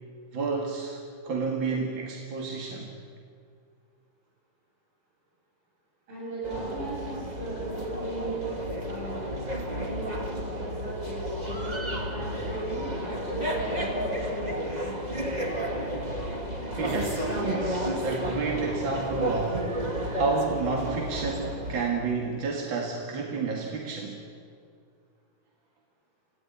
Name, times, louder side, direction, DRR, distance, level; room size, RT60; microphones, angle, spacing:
voice 1, 0.3-1.0 1.2-2.9 16.7-24.2, right 4 dB, 40° right, 0 dB, 2.2 m, -30 dB
voice 2, 6.1-8.4 8.9-9.4 9.7-10.2 10.6-11.7 12.1-15.2, right 1 dB, 75° right, -7 dB, 9.3 m, -37 dB
sound 1, 6.4-21.9, equal, 15° right, 1.9 m, -32 dB
26.5 x 15.5 x 9.9 m, 2.2 s
omnidirectional pair, 3.9 m